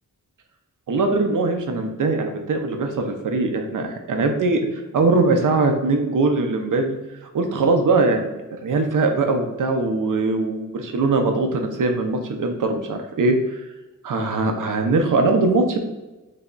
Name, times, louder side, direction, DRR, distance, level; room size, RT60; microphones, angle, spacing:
voice 1, 0.9-13.6 14.0-15.8, right 3 dB, 70° right, 5 dB, 0.5 m, -21 dB
3.3 x 2.2 x 3.7 m, 1.1 s
wide cardioid pair, 130°, 33 cm